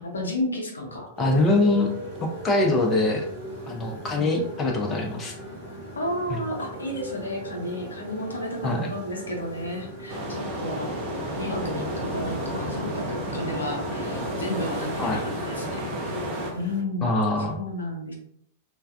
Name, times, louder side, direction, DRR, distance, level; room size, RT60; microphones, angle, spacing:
voice 1, 0.0-1.1 4.2-4.5 5.9-10.9 11.4-15.9 16.5-17.2 17.5-18.1, left 1 dB, 80° left, 1 dB, 0.6 m, -32 dB
voice 2, 1.2-1.9 2.4-3.2 3.7-5.3 6.3-6.4 8.6-8.9 15.0-15.2 17.0-17.6, left 2 dB, 20° left, 1 dB, 0.4 m, -23 dB
Motorcycle, 1.2-16.8, equal, 80° right, 1.4 m, -39 dB
sound 1, 10.1-16.5, equal, 45° right, 0.7 m, -31 dB
3.2 x 2.2 x 2.2 m, 0.71 s
figure-of-eight pair, 95°, 0 cm